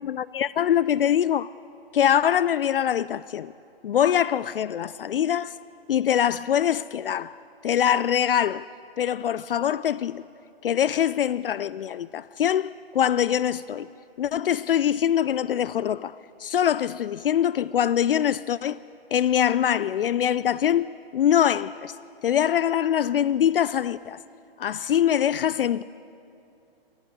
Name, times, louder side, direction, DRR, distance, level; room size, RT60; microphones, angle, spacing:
voice 1, 0.0-1.5 1.9-3.5 3.8-5.6 5.9-8.7 9.0-10.3 10.6-13.9 14.2-18.8 19.1-22.0 22.2-24.2 24.6-25.8, left 10 dB, 70° left, 0.5 m, -23 dB
28.5 x 14.5 x 8.0 m
figure-of-eight pair, 125°, 29 cm